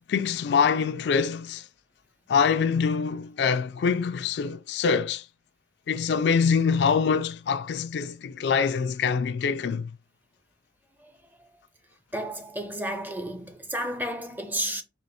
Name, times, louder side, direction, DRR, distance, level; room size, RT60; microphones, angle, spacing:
voice 1, 0.1-1.6 2.3-5.2 5.9-9.9, left 6 dB, 65° left, 0.3 m, -24 dB
voice 2, 12.1-14.8, equal, 10° right, 0.6 m, -32 dB
4.1 x 2.9 x 3.3 m
head